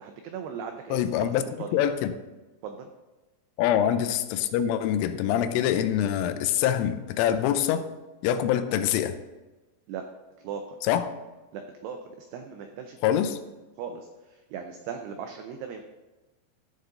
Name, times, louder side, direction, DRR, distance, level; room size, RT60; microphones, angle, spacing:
voice 1, 0.0-1.8 2.6-2.9 9.9-10.1 10.4-10.8 11.5-13.0 13.8-15.8, right 7 dB, 90° right, 2.3 m, -38 dB
voice 2, 0.9-2.1 3.6-7.9 8.2-9.2 10.8-11.1 13.0-13.4, left 10 dB, 90° left, 3.2 m, -25 dB
14.5 x 6.7 x 3.8 m
omnidirectional pair, 5.6 m